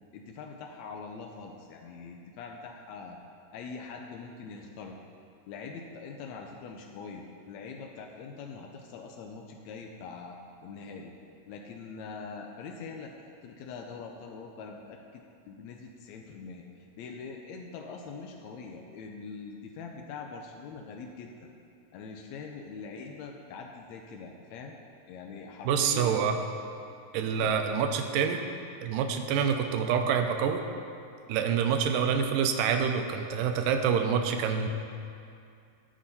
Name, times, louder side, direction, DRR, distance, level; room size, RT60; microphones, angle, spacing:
voice 1, 0.1-3.2 3.5-5.0 5.5-10.4 10.6-11.1 11.5-15.2 15.5-16.6 16.9-21.5 21.9-24.7 25.1-26.5 27.3-27.5, left 5 dB, 85° left, 2 dB, 1.6 m, -43 dB
voice 2, 25.7-26.4 27.1-28.4 28.8-30.6 31.3-34.7, right 7 dB, 85° right, 5 dB, 2.3 m, -27 dB
17.5 x 6.2 x 4.1 m, 2.5 s
omnidirectional pair, 4.0 m